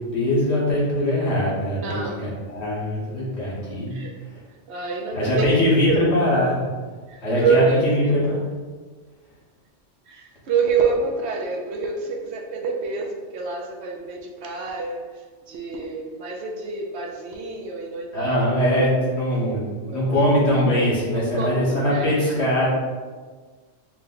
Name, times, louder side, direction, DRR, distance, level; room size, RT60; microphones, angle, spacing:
voice 1, 0.1-3.9 5.1-6.6 7.2-8.4 18.1-22.7, left 1 dB, 65° left, -6 dB, 1.5 m, -22 dB
voice 2, 1.8-2.2 3.9-4.1 4.7-6.0 7.1-8.2 10.1-18.8 19.9-20.1 21.1-22.3, right 5 dB, 70° right, 1 dB, 0.9 m, -27 dB
4.6 x 2.2 x 3.9 m, 1.4 s
omnidirectional pair, 1.2 m